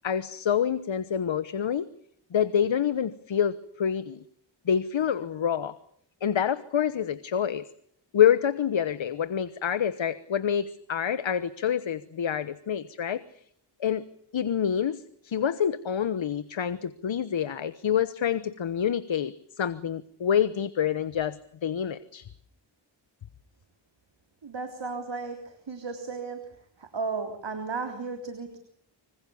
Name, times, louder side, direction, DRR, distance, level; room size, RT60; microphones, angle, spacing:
voice 1, 0.0-1.9 2.3-4.2 4.7-5.8 6.2-7.7 8.1-13.2 13.8-14.0 14.3-22.3, left 8 dB, 75° left, 14 dB, 1.1 m, -27 dB
voice 2, 24.4-26.4 26.8-28.6, right 4 dB, 65° right, 5 dB, 3.6 m, -34 dB
25.5 x 25.5 x 7.1 m, 0.66 s
wide cardioid pair, 70°, 46 cm